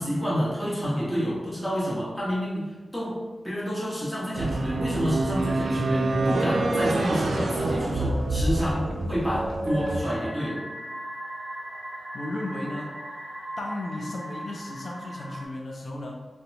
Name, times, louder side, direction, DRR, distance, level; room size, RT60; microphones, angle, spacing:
voice 1, 0.0-3.2 3.4-10.6, equal, 5° left, -7 dB, 1.2 m, -29 dB
sound 1, 4.3-10.0, right 2 dB, 85° right, 0.3 m, -26 dB
sound 2, 9.6-15.4, right 1 dB, 50° right, 0.9 m, -39 dB
voice 2, 12.1-13.0 13.6-16.1, left 1 dB, 70° left, -1 dB, 0.4 m, -34 dB
2.8 x 2.1 x 4.0 m, 1.3 s
wide cardioid pair, 75°, 0 cm